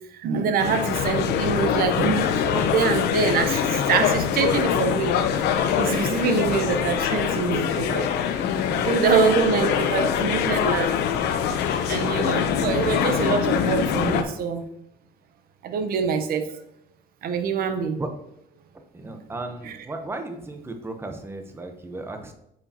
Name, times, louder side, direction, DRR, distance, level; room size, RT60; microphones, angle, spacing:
voice 1, 0.1-5.1 5.8-8.1 8.8-10.9 11.9-14.7 15.6-16.5 17.2-18.0 19.7-19.8, right 5 dB, 60° right, 7 dB, 0.8 m, -24 dB
sound 1, 0.6-14.2, left 8 dB, 80° left, 0.7 m, -24 dB
voice 2, 8.7-9.2 9.5-9.8 12.2-12.7 18.0-18.1 18.9-22.3, right 2 dB, 15° right, 5 dB, 0.9 m, -36 dB
8.5 x 4.9 x 2.9 m, 0.79 s
cardioid pair, 110°, 17 cm